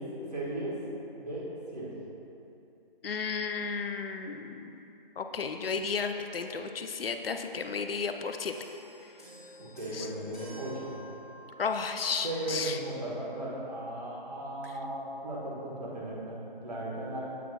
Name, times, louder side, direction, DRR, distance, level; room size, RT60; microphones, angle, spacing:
voice 1, 0.0-1.9 9.6-10.9 12.2-17.2, right 1 dB, 45° right, -5 dB, 1.3 m, -36 dB
voice 2, 3.0-4.8 5.2-8.5 9.9-10.1 11.6-12.8, left 5 dB, 80° left, 6 dB, 0.5 m, -33 dB
sound 1, 8.5-12.1 13.0-13.2, equal, 5° right, 1.1 m, -50 dB
8.2 x 5.9 x 2.3 m, 2.8 s
figure-of-eight pair, 175°, 29 cm